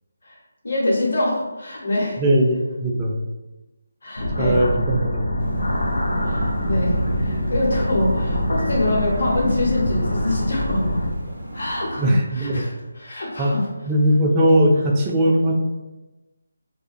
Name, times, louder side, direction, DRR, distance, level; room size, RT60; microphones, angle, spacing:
voice 1, 0.6-2.2 4.0-4.6 6.2-11.0 11.5-13.6, left 1 dB, 65° left, -3 dB, 0.8 m, -25 dB
voice 2, 2.2-3.2 4.4-5.2 5.6-5.7 12.0-12.7 13.4-13.5 13.9-15.5, equal, 20° right, -2 dB, 0.3 m, -19 dB
sound 1, 4.2-11.1, left 1 dB, 80° left, 0.4 m, -25 dB
sound 2, 5.4-12.1, right 1 dB, 85° right, 0.5 m, -31 dB
2.4 x 2.1 x 2.5 m, 1.1 s
figure-of-eight pair, 155°, 0 cm